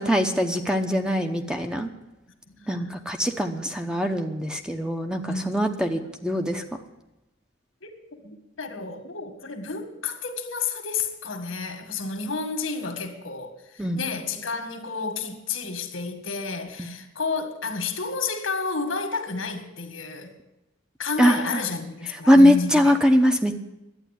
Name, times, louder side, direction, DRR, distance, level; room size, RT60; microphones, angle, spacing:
voice 1, 0.0-1.9 2.7-6.6 13.8-14.0 16.8-16.9 21.2-21.6 22.3-23.6, equal, 5° right, 0.9 m, -21 dB
voice 2, 5.2-5.6 5.9-6.1 7.8-8.0 8.2-20.3 21.0-22.9, left 4 dB, 90° left, 1.9 m, -31 dB
12.0 x 9.2 x 10.0 m
head